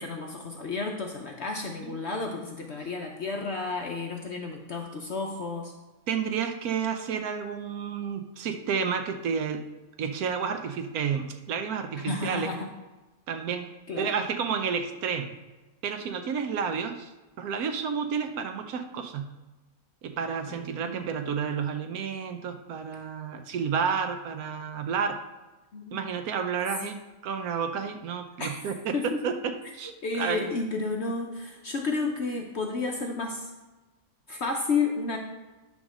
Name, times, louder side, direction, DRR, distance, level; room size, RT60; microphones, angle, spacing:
voice 1, 0.0-5.7 12.0-12.7 13.9-14.1 20.5-21.1 25.7-26.0 26.8-27.0 28.4-28.5 28.9-29.1 30.0-33.5 34.3-35.2, left 4 dB, 55° left, 2 dB, 0.7 m, -32 dB
voice 2, 6.1-9.6 10.0-12.5 13.3-13.7 14.0-15.3 15.8-17.1 17.4-19.3 20.0-25.2 25.9-27.0 27.2-29.9 30.2-30.5, right 6 dB, 70° right, 6 dB, 1.1 m, -30 dB
10.5 x 3.5 x 6.2 m, 1.2 s
omnidirectional pair, 1.8 m